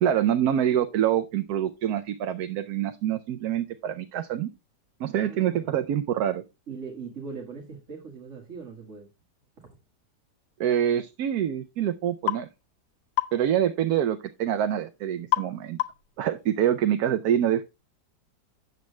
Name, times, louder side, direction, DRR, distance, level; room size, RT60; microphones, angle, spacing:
voice 1, 0.0-4.5 5.0-6.4 10.6-12.5 13.3-15.8 16.2-17.6, right 10 dB, 70° right, 1.1 m, -25 dB
voice 2, 5.2-5.8 6.7-9.1 9.6-9.7, right 5 dB, 45° right, 2.0 m, -40 dB
sound 1, 12.3-12.5 13.2-13.4 15.3-15.5 15.8-16.1, left 17 dB, 80° left, 1.4 m, -26 dB
9.4 x 7.4 x 3.2 m
omnidirectional pair, 1.8 m